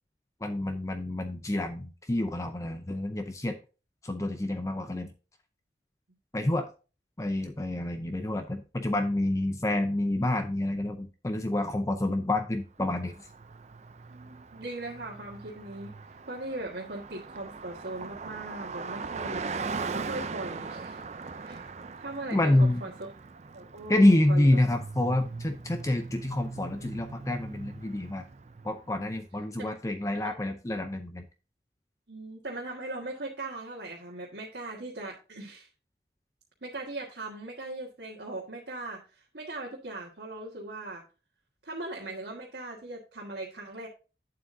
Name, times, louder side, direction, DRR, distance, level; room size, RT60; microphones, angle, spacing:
voice 1, 0.4-3.6 4.0-5.1 6.3-6.7 7.2-13.1 22.3-22.8 23.9-28.2 28.6-31.2, left 1 dB, 20° left, 7 dB, 0.5 m, -27 dB
Car passing by, 12.9-29.0, right 4 dB, 40° right, 0.5 m, -40 dB
voice 2, 14.1-15.9 16.3-19.4 19.9-21.0 21.3-21.7 22.0-23.1 23.5-24.6 29.6-29.7 30.1-30.4 32.1-35.7 36.6-41.0 41.6-43.9, right 2 dB, 80° right, -3 dB, 1.6 m, -39 dB
8.6 x 7.5 x 2.7 m, 0.32 s
head